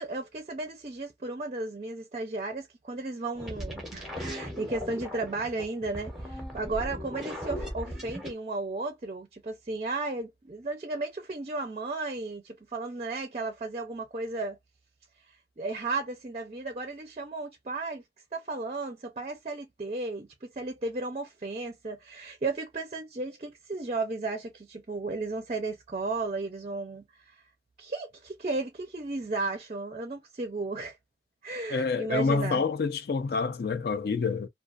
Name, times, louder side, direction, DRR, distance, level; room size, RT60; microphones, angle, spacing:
voice 1, 0.0-14.6 15.3-18.0 18.3-27.4 27.8-31.0 31.4-32.6, right 3 dB, 35° right, 0.4 m, -34 dB
sound 1, 3.3-8.3, equal, ahead, 0.7 m, -38 dB
voice 2, 31.7-34.5, left 4 dB, 55° left, 0.4 m, -27 dB
2.4 x 2.3 x 2.3 m
head